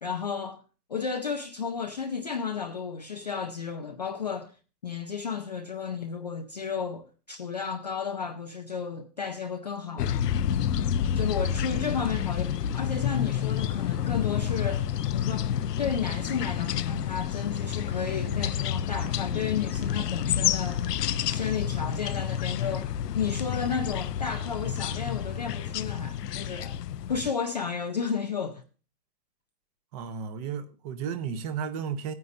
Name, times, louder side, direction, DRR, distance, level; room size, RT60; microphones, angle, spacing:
voice 1, 0.0-0.6 0.9-4.5 4.8-10.2 11.1-14.9 15.1-20.9 21.3-26.8 27.1-28.6, left 6 dB, 30° left, 0.4 m, -33 dB
sound 1, 10.0-27.3, left 9 dB, 70° left, 0.7 m, -29 dB
voice 2, 29.9-32.1, right 7 dB, 25° right, 0.9 m, -33 dB
16.5 x 9.4 x 2.6 m
hypercardioid pair, 150°, 49 cm